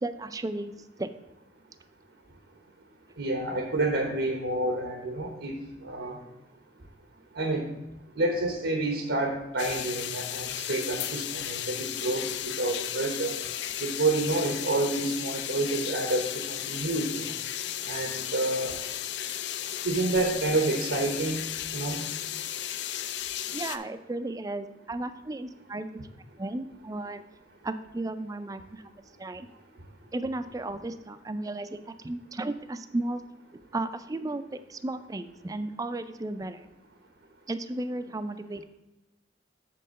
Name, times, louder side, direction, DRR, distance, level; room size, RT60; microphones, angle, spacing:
voice 1, 0.0-1.1 23.5-25.9 26.4-27.2 27.6-28.9 29.2-29.5 30.1-33.3 33.7-34.4 34.7-36.7 37.5-38.6, right 2 dB, 20° right, 11 dB, 0.3 m, -34 dB
voice 2, 3.2-5.5 5.8-6.2 7.3-7.7 8.2-13.3 13.8-17.3 17.9-18.8 19.8-21.4 21.7-22.0, right 2 dB, 85° right, 3 dB, 1.0 m, -29 dB
sound 1, 9.6-23.8, left 11 dB, 65° left, 0.4 m, -34 dB
7.7 x 3.8 x 6.4 m, 0.95 s
head